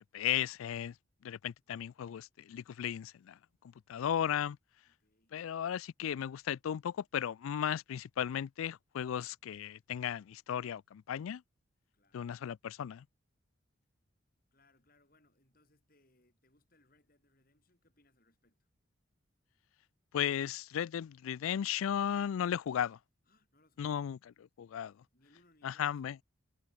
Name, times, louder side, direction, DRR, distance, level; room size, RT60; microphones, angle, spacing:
voice 1, 0.1-0.9 1.2-3.4 3.9-4.6 5.3-11.4 12.1-13.0 20.1-22.9 23.8-24.2 24.6-24.9 25.6-26.2, left 9 dB, 85° left, 0.3 m, -35 dB
voice 2, 4.9-5.4 11.9-12.4 14.5-18.7 22.5-22.9 23.2-24.1 25.1-26.0, left 2 dB, 45° left, 7.4 m, -70 dB
head